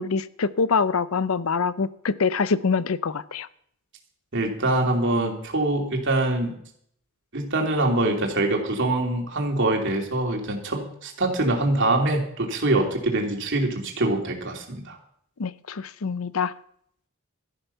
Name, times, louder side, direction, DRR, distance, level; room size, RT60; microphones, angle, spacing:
voice 1, 0.0-3.5 15.4-16.5, left 5 dB, 70° left, 16 dB, 0.6 m, -25 dB
voice 2, 4.3-6.5 7.3-15.0, right 2 dB, 55° right, 1 dB, 2.9 m, -24 dB
13.0 x 11.5 x 5.6 m, 0.67 s
head